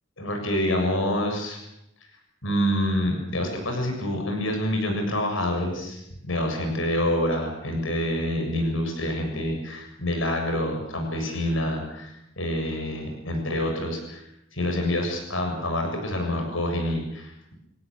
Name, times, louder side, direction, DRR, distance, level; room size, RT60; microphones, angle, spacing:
voice 1, 0.2-1.6 2.4-14.2 14.5-17.6, left 1 dB, 70° left, 3 dB, 7.2 m, -27 dB
28.5 x 18.0 x 8.6 m, 0.82 s
head